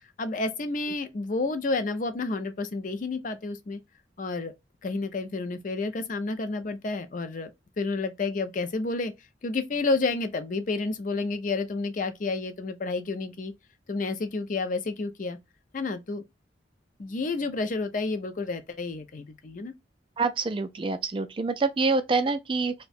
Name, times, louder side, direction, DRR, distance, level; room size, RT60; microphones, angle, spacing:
voice 1, 0.2-3.8 4.2-4.5 4.8-7.5 7.8-9.1 9.4-13.5 13.9-15.4 15.7-16.2 17.0-19.7, left 3 dB, 45° left, 0.4 m, -30 dB
voice 2, 20.2-22.7, right 3 dB, 25° right, 0.3 m, -26 dB
2.7 x 2.1 x 4.1 m
head